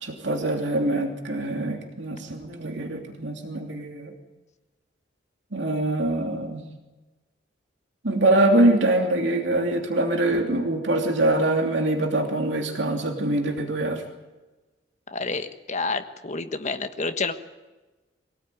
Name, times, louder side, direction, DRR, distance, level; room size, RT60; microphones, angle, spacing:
voice 1, 0.0-4.1 5.5-6.6 8.0-14.0, right 1 dB, 70° right, 2 dB, 2.9 m, -24 dB
voice 2, 15.1-17.3, left 3 dB, 40° left, 7 dB, 1.4 m, -29 dB
24.0 x 18.0 x 9.3 m, 1.2 s
head